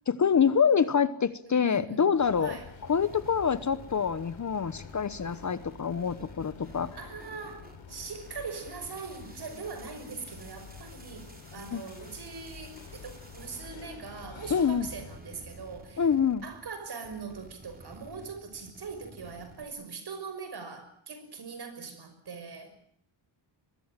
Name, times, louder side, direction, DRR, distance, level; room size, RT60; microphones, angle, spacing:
voice 1, 0.1-2.6 2.9-7.0 11.7-11.8 14.5-14.9 16.0-16.4, left 7 dB, 35° left, 15 dB, 1.0 m, -26 dB
voice 2, 0.7-1.0 1.5-2.7 7.0-16.1 16.4-22.7, right 5 dB, 50° right, 10 dB, 5.7 m, -42 dB
sound 1, 2.1-15.2, left 6 dB, 65° left, 4.0 m, -48 dB
sound 2, 2.8-14.8 15.0-19.6, right 2 dB, 20° right, 3.9 m, -52 dB
23.5 x 21.5 x 8.9 m, 0.65 s
wide cardioid pair, 145°, 49 cm